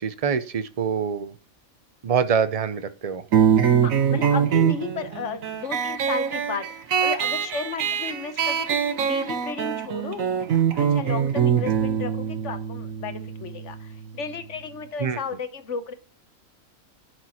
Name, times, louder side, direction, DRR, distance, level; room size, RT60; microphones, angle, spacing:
voice 1, 0.0-1.3 2.0-3.2 15.0-15.2, right 7 dB, 40° right, 12 dB, 0.5 m, -25 dB
sound 1, 3.3-14.4, right 8 dB, 75° right, 1.3 m, -24 dB
voice 2, 3.8-15.9, left 5 dB, 65° left, 10 dB, 1.2 m, -34 dB
10.5 x 4.8 x 4.3 m, 0.40 s
omnidirectional pair, 1.4 m